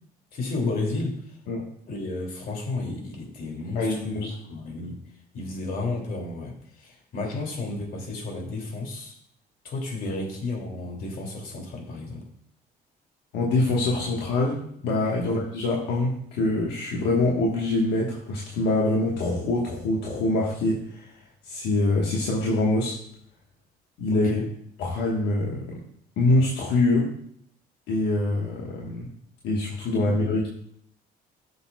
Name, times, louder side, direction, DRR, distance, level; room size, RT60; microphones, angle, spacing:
voice 1, 0.3-1.4 1.8-5.0 5.3-9.2 9.6-12.2 15.2-15.4 24.1-24.4 30.0-30.2, left 2 dB, 60° left, 1 dB, 2.7 m, -32 dB
voice 2, 3.7-4.3 13.3-21.1 21.4-23.0 24.0-24.4 24.8-25.8 26.2-27.1 27.9-29.1 29.4-30.5, left 2 dB, 80° left, -2 dB, 1.4 m, -24 dB
14.5 x 7.1 x 2.3 m, 0.69 s
cardioid pair, 110°, 17 cm